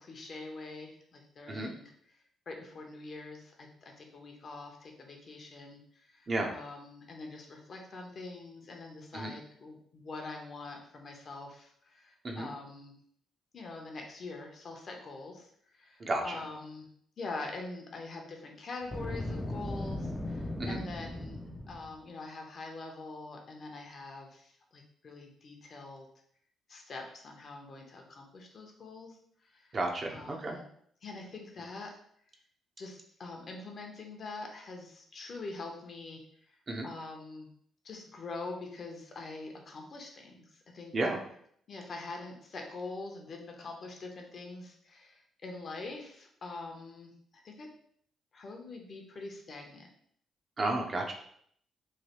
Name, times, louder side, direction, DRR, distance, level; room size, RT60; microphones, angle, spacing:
voice 1, 0.0-1.9 2.5-12.9 13.5-16.9 17.2-26.1 26.7-29.2 29.4-29.7 30.1-30.6 31.0-32.0 32.8-36.2 36.8-37.5 37.8-40.9 41.7-47.1 47.4-47.7 48.3-49.9, left 3 dB, 50° left, 2 dB, 0.6 m, -44 dB
voice 2, 16.0-16.4 20.6-20.8 29.7-30.6 36.7-36.9 40.9-41.2 50.6-51.1, right 2 dB, 40° right, 1 dB, 0.6 m, -32 dB
Boom, 18.8-21.9, left 1 dB, 10° left, 0.4 m, -37 dB
3.1 x 2.2 x 2.9 m, 0.65 s
cardioid pair, 90°, 0 cm